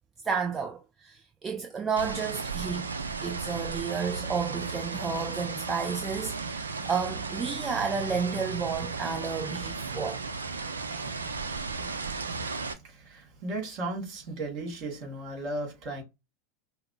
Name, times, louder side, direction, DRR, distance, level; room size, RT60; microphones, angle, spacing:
voice 1, 0.2-2.9 3.2-10.2, right 5 dB, 25° right, 0.6 m, -31 dB
sound 1, 2.0-12.7, right 4 dB, 85° right, 0.5 m, -35 dB
voice 2, 12.8-16.0, right 2 dB, 50° right, 2.0 m, -35 dB
5.7 x 2.0 x 2.3 m
hypercardioid pair, 85°, 0 cm